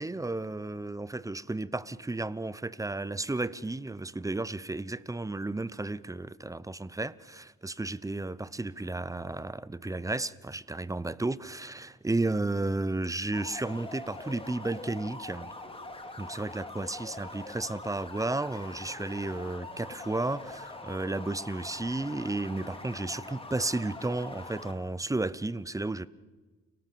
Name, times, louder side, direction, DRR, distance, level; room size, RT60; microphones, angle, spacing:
voice 1, 0.0-15.5 16.2-26.1, right 2 dB, 10° right, 0.8 m, -33 dB
sound 1, 13.3-24.7, left 2 dB, 20° left, 3.3 m, -43 dB
29.5 x 18.0 x 7.1 m
cardioid pair, 90°, 30 cm